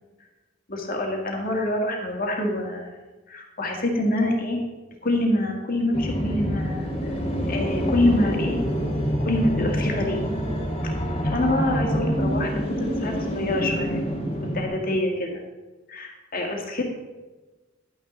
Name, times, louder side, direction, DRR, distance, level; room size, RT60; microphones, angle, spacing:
voice 1, 0.7-3.0 3.3-4.6 5.0-7.2 7.5-8.6 9.2-10.2 11.2-14.0 14.4-15.4 15.9-16.9, left 1 dB, 50° left, 1 dB, 1.9 m, -26 dB
sound 1, 5.9-14.7, equal, 30° left, 1.7 m, -26 dB
11.0 x 9.3 x 3.9 m, 1.2 s
head